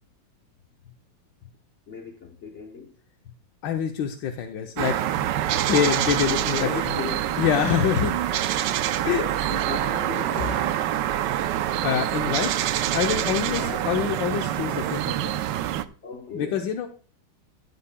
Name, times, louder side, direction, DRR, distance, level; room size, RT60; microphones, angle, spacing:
voice 1, 1.9-3.0 5.5-6.0 6.2-7.8 8.3-10.7 13.5-13.9 16.0-16.9, left 6 dB, 50° left, 1.0 m, -36 dB
voice 2, 3.6-4.9 5.7-6.3 6.6-6.7 7.4-8.1 9.0-9.2 11.8-12.6 12.9-15.3 16.3-16.9, left 8 dB, 85° left, 1.5 m, -25 dB
sound 1, 4.8-15.8, right 12 dB, 80° right, 1.2 m, -26 dB
sound 2, 7.9-8.4 8.9-9.0 9.3-9.4 9.8-9.9 10.4-10.9 11.5-11.8 12.0-12.1 12.3-12.6 13.2-13.3 13.5-13.6 14.0-14.1 14.3-14.4, left 1 dB, 45° right, 3.2 m, -36 dB
15.0 x 8.6 x 2.2 m
omnidirectional pair, 2.0 m